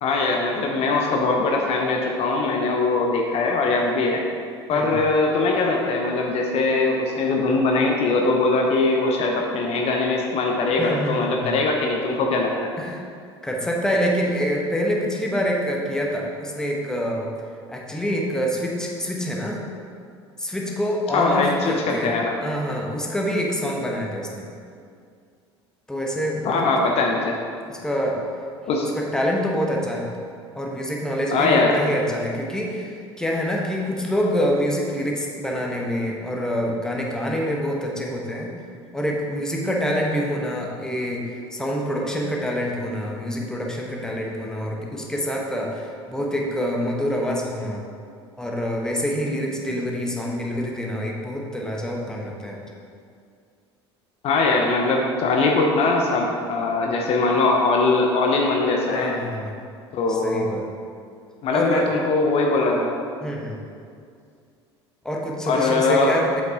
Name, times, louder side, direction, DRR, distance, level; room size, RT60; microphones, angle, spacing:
voice 1, 0.0-4.2 4.7-12.7 21.1-22.3 26.4-27.3 28.7-28.9 31.3-31.8 54.2-59.1 59.9-60.4 61.4-62.9 65.5-66.2, left 3 dB, 45° left, 0 dB, 0.8 m, -21 dB
voice 2, 10.8-11.6 12.8-13.0 13.4-17.3 17.7-19.6 20.4-24.5 25.9-26.6 27.7-28.2 28.8-30.1 30.5-38.5 38.9-47.8 48.4-52.7 58.9-59.5 60.1-60.6 61.5-61.9 63.2-63.6 65.0-66.4, equal, 5° left, -1 dB, 1.2 m, -26 dB
7.8 x 5.5 x 3.7 m, 2.3 s
figure-of-eight pair, 65°, 14 cm